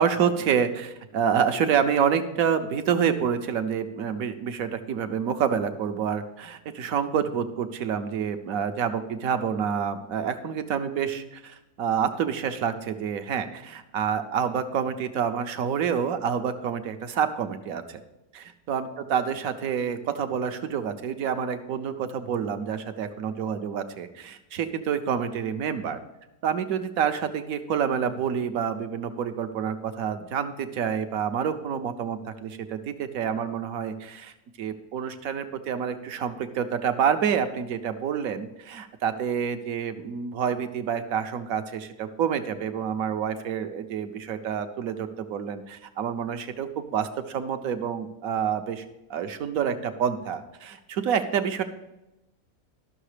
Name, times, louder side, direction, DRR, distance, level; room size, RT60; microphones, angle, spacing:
voice 1, 0.0-18.0 18.3-26.0 26.4-34.3 34.6-48.8 49.1-51.6, right 7 dB, 70° right, 8 dB, 1.2 m, -28 dB
12.5 x 6.3 x 5.0 m, 0.96 s
omnidirectional pair, 1.5 m